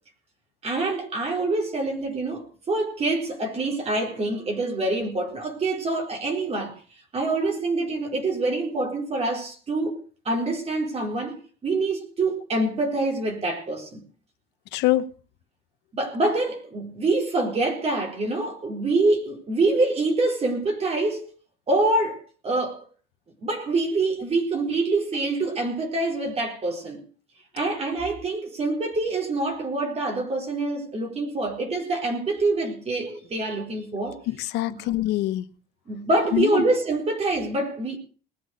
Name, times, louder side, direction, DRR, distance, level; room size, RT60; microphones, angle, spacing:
voice 1, 0.6-6.7 7.1-10.0 10.2-14.0 15.9-21.3 21.7-22.8 23.4-27.0 27.5-34.2 34.7-34.9 35.9-38.0, right 2 dB, 40° right, 4.3 m, -25 dB
voice 2, 14.7-15.0 34.3-35.4 36.3-36.6, left 16 dB, 90° left, 1.0 m, -24 dB
19.5 x 8.3 x 6.4 m
cardioid pair, 110°, 17 cm